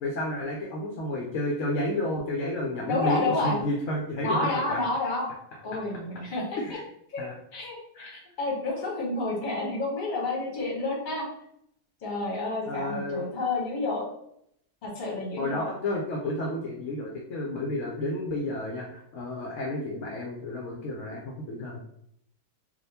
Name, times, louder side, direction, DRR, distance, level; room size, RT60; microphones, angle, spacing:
voice 1, 0.0-4.8 6.6-6.8 7.2-7.3 7.9-8.2 12.7-13.2 15.4-21.8, left 1 dB, 65° left, -1 dB, 0.8 m, -31 dB
voice 2, 2.9-3.6 4.2-5.3 5.6-6.4 7.1-7.3 7.5-8.1 8.4-11.2 12.0-14.1 14.8-15.7, left 2 dB, 35° left, -3 dB, 1.0 m, -29 dB
3.6 x 2.4 x 2.7 m, 0.74 s
omnidirectional pair, 1.7 m